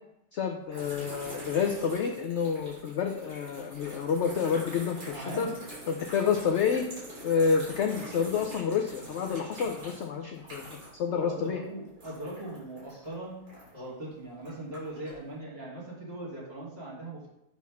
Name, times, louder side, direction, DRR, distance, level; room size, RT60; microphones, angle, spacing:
voice 1, 0.3-5.5 5.9-6.9 7.2-11.6, left 6 dB, 70° left, 4 dB, 0.6 m, -29 dB
sound 1, 0.7-11.1 11.3-13.9 14.4-15.2, equal, 75° right, 3.5 m, -45 dB
voice 2, 5.1-5.6 11.0-13.4 13.7-17.3, right 1 dB, 35° right, -6 dB, 2.1 m, -40 dB
7.0 x 3.1 x 5.7 m, 0.86 s
omnidirectional pair, 1.7 m